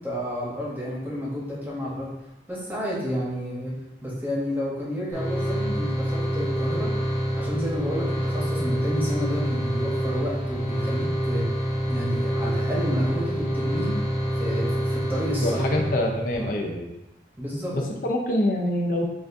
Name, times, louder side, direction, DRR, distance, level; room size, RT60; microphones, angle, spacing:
voice 1, 0.0-2.1 2.5-3.8 4.0-6.9 7.4-11.5 11.9-14.0 14.4-15.7 17.4-17.8, equal, 10° right, -5 dB, 0.9 m, -30 dB
sound 1, 5.1-16.5, equal, 20° left, 0.8 m, -27 dB
voice 2, 15.4-16.9 17.7-19.1, left 1 dB, 50° left, 0 dB, 0.5 m, -25 dB
6.8 x 2.4 x 2.6 m, 0.92 s
head